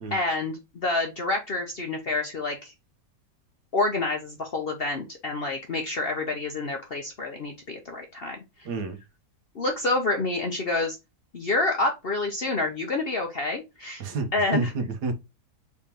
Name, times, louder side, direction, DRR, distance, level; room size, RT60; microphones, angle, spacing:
voice 1, 0.1-2.7 3.7-8.4 9.5-11.0 11.3-14.0 14.3-14.7, left 2 dB, 50° left, 0.7 m, -28 dB
voice 2, 14.5-15.1, right 4 dB, 75° right, 1.5 m, -29 dB
4.8 x 3.6 x 2.9 m
omnidirectional pair, 1.8 m